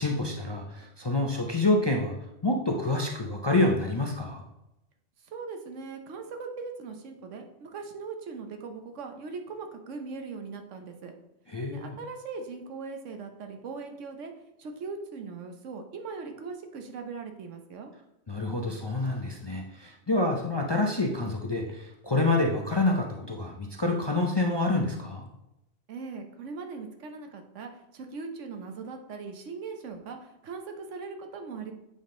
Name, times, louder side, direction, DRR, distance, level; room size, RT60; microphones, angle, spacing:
voice 1, 0.0-2.2 2.4-4.4 11.5-11.9 18.3-25.3, left 2 dB, 35° left, 0 dB, 0.4 m, -27 dB
voice 2, 5.2-11.1 11.7-14.3 14.6-17.9 25.9-31.7, right 4 dB, 80° right, 5 dB, 1.2 m, -40 dB
8.3 x 3.6 x 3.8 m, 0.89 s
omnidirectional pair, 1.2 m